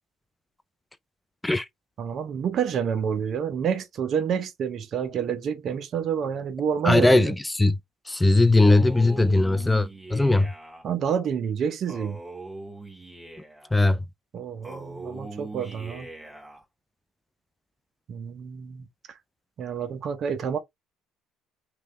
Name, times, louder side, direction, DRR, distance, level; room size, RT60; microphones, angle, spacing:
voice 1, 2.0-7.3 10.8-12.2 14.3-16.1 18.1-18.9 19.6-20.6, right 7 dB, 55° right, 0.7 m, -28 dB
voice 2, 6.8-7.8 8.1-10.5 13.7-14.0, left 2 dB, 10° left, 0.4 m, -19 dB
Male speech man speaking, 8.6-10.8 11.9-13.7 14.6-16.6, right 2 dB, 15° right, 1.8 m, -41 dB
3.4 x 3.2 x 3.1 m
supercardioid pair, 85°, 0 cm